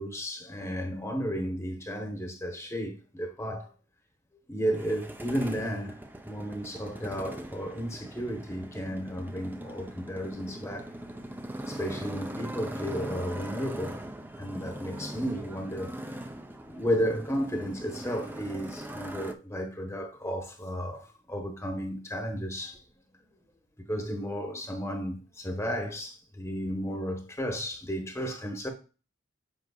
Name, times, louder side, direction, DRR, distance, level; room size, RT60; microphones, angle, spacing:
voice 1, 0.0-3.7 4.5-6.0 6.2-10.9 11.7-14.0 14.4-16.3 16.7-22.8 23.9-28.7, equal, 15° left, 1.0 m, -33 dB
Motorcycle, 4.7-19.3, right 1 dB, 10° right, 0.5 m, -41 dB
8.1 x 5.1 x 2.3 m
head